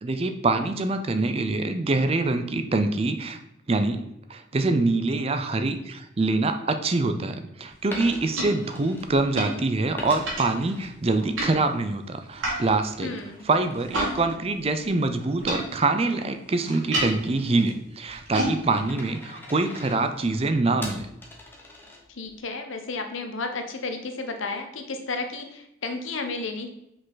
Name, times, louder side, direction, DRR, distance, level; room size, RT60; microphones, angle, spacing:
voice 1, 0.0-3.4 3.7-4.0 4.3-13.1 13.4-21.1, right 3 dB, 30° right, 8 dB, 0.4 m, -25 dB
sound 1, 7.7-14.1 14.4-20.3, right 1 dB, 85° right, 2.6 m, -34 dB
Coin (dropping), 7.8-9.5 10.0-11.5 11.9-22.4, left 1 dB, 10° left, 1.0 m, -44 dB
voice 2, 13.0-13.5 22.1-26.7, left 3 dB, 75° left, 5 dB, 0.9 m, -32 dB
6.2 x 5.2 x 3.9 m, 0.82 s
head